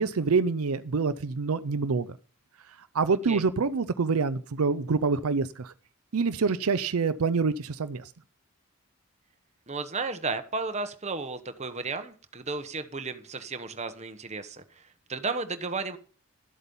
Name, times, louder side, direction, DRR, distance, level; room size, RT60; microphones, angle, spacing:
voice 1, 0.0-2.1 2.9-5.7 6.1-8.1, right 4 dB, 75° right, 13 dB, 0.5 m, -26 dB
voice 2, 3.1-3.4 9.7-14.8 15.1-16.0, right 3 dB, 30° right, 8 dB, 1.1 m, -34 dB
12.5 x 8.2 x 5.4 m, 0.41 s
head